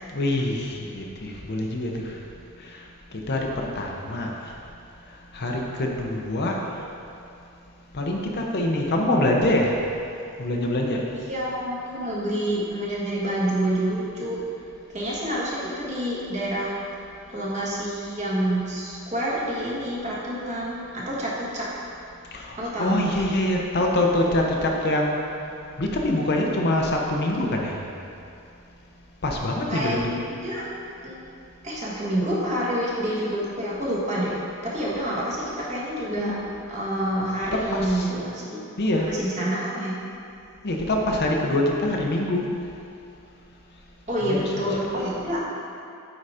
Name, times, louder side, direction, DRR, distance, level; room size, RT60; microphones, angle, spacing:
voice 1, 0.1-2.1 3.3-4.5 5.3-6.5 7.9-9.8 10.4-11.0 22.3-25.2 25.8-27.8 29.2-30.1 36.1-36.4 37.5-38.1 38.8-39.1 40.6-42.5 44.2-44.8, left 1 dB, 50° left, 0 dB, 0.7 m, -25 dB
voice 2, 11.1-14.4 14.9-16.7 17.3-21.7 22.5-23.3 29.7-30.6 31.0-31.2 31.6-34.4 34.6-36.3 36.7-38.6 39.1-39.9 44.1-45.4, right 1 dB, 30° right, -6 dB, 1.5 m, -27 dB
8.5 x 3.9 x 4.9 m, 2.6 s
head